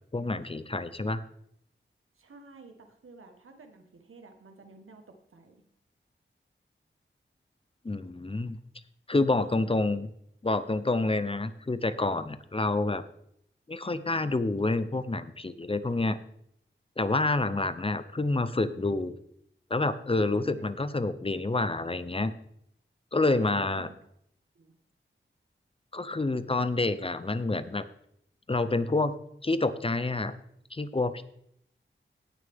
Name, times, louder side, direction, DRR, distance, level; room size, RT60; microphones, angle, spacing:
voice 1, 0.1-1.2 7.8-8.6 9.1-10.1 10.4-13.0 13.7-16.2 17.0-19.2 19.7-22.3 23.1-23.9 25.9-27.8 28.5-29.1 29.4-30.3 30.7-31.2, left 2 dB, 25° left, 12 dB, 0.7 m, -28 dB
voice 2, 2.2-5.6 9.4-9.6 20.4-20.9 23.1-24.0 24.5-24.7, right 2 dB, 90° right, 5 dB, 1.4 m, -50 dB
17.5 x 6.5 x 3.6 m, 0.71 s
wide cardioid pair, 85°, 21 cm